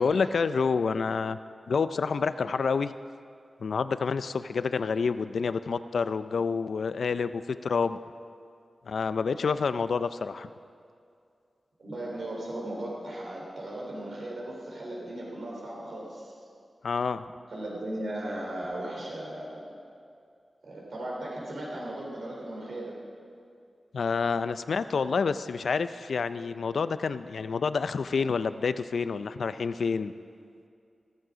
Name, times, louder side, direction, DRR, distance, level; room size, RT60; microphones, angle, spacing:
voice 1, 0.0-1.4 1.7-2.9 3.6-8.0 8.9-10.5 16.8-17.2 23.9-30.1, left 5 dB, 85° left, 12 dB, 0.4 m, -28 dB
voice 2, 11.8-16.3 17.5-19.8 20.6-23.0, right 1 dB, 75° right, -3 dB, 4.0 m, -37 dB
14.5 x 14.0 x 5.1 m, 2.4 s
wide cardioid pair, 110°, 0 cm